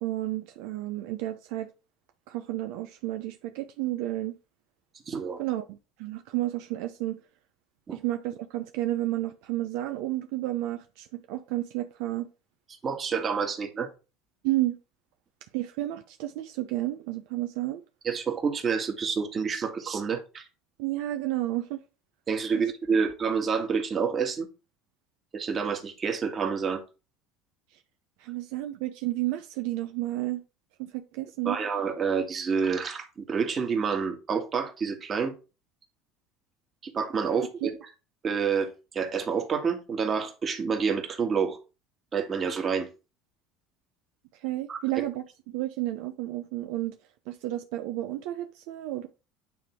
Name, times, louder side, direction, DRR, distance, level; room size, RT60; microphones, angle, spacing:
voice 1, 0.0-1.7 2.3-4.4 5.4-7.2 7.9-12.3 14.4-14.8 15.5-17.8 20.8-21.8 22.5-22.6 28.2-30.4 30.8-31.6 37.6-37.7 44.4-47.0 47.3-49.1, right 15 dB, 75° right, 0.7 m, -31 dB
voice 2, 5.1-5.4 7.9-8.0 12.8-13.9 18.0-20.5 22.3-24.5 25.3-26.8 31.5-35.3 36.8-37.7 38.2-41.6 42.1-42.9 44.7-45.1, right 6 dB, 30° right, 1.8 m, -28 dB
9.2 x 3.5 x 4.6 m
supercardioid pair, 110°, 0 cm